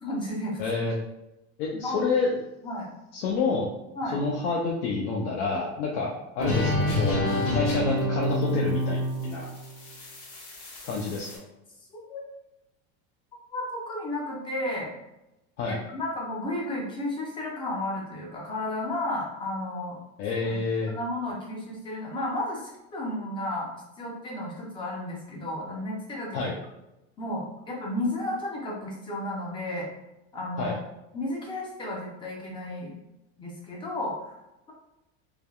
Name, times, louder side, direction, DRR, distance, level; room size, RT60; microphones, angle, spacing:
voice 1, 0.0-0.6 1.8-2.0 2.6-2.9 4.0-4.2 12.1-12.2 13.5-14.9 15.7-20.0 20.4-20.6 20.9-23.7 24.0-26.5 27.2-29.9 30.3-30.8 31.1-32.9 33.4-34.3, left 1 dB, 15° left, -2 dB, 0.4 m, -33 dB
voice 2, 0.6-0.9 1.6-2.3 3.1-3.7 4.1-9.5 10.8-11.3 15.6-15.8 20.2-20.9 26.3-26.5 30.6-30.7, left 4 dB, 80° left, -2 dB, 0.6 m, -28 dB
sound 1, 6.4-11.3, left 1 dB, 65° left, 1.2 m, -28 dB
3.3 x 2.2 x 2.3 m, 0.92 s
supercardioid pair, 160°, 34 cm